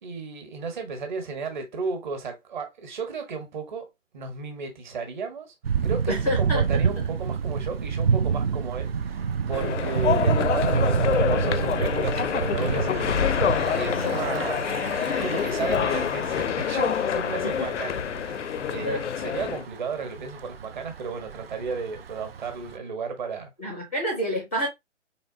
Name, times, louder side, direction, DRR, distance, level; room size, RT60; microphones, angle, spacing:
voice 1, 0.0-3.9 4.1-5.5 5.8-14.6 15.1-23.5, right 4 dB, 40° right, 1.5 m, -34 dB
Thunder / Bicycle, 5.6-22.8, right 6 dB, 55° right, 0.6 m, -28 dB
voice 2, 6.1-6.6 7.0-7.1 14.0-14.5 17.4-17.7 18.8-19.0 23.6-24.7, equal, 10° left, 0.5 m, -29 dB
sound 1, 9.5-19.7, left 8 dB, 70° left, 0.5 m, -26 dB
4.1 x 4.0 x 2.6 m
figure-of-eight pair, 145°, 38 cm